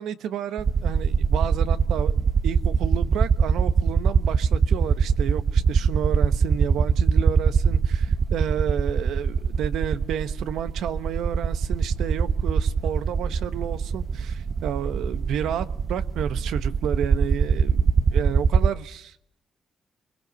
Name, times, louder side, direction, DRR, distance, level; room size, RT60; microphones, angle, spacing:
voice 1, 0.0-2.2 2.4-19.2, right 9 dB, 80° right, 11 dB, 1.1 m, -31 dB
sound 1, 0.6-18.7, right 5 dB, 50° right, 0.9 m, -22 dB
24.5 x 21.5 x 8.0 m, 0.75 s
supercardioid pair, 60°, 0 cm